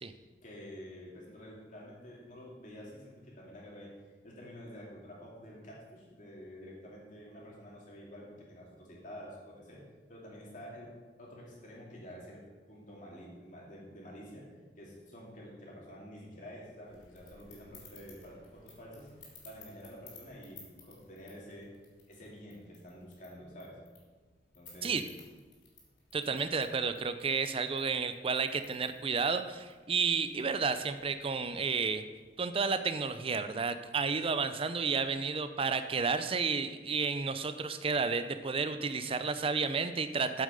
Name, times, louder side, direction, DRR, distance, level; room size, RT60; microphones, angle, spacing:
voice 1, 0.4-9.8 10.1-10.9 11.2-19.1 19.4-21.7 22.1-23.8 24.5-25.0, equal, 45° left, -4 dB, 2.6 m, -49 dB
sound 1, 16.8-32.5, left 4 dB, 85° left, 3.3 m, -59 dB
voice 2, 26.1-32.0 32.4-40.4, right 5 dB, 30° right, 11 dB, 0.5 m, -31 dB
8.6 x 7.4 x 5.2 m, 1.3 s
head